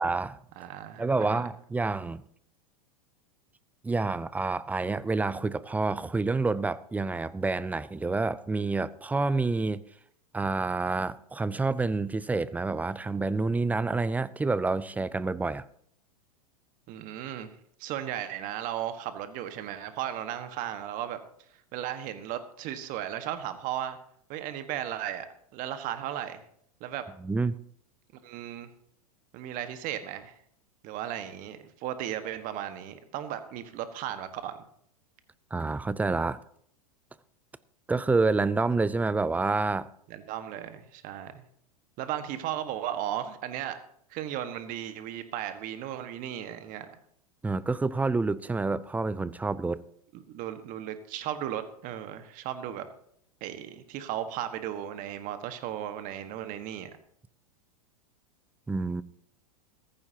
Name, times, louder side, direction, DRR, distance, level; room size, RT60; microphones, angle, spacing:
voice 1, 0.0-0.4 1.0-2.2 3.8-9.8 10.3-15.6 27.2-27.5 35.5-36.4 37.9-39.9 47.4-49.8 58.7-59.0, right 3 dB, 10° right, 0.5 m, -28 dB
voice 2, 0.6-1.5 16.9-17.5 17.8-21.2 21.7-24.0 24.3-25.3 25.5-26.4 26.8-27.0 28.2-28.7 29.3-30.4 30.8-34.6 40.1-41.4 42.0-43.8 44.1-47.0 50.1-52.9 53.4-56.9, right 11 dB, 45° right, 1.5 m, -35 dB
15.5 x 14.5 x 2.9 m
hypercardioid pair, 105°, 19 cm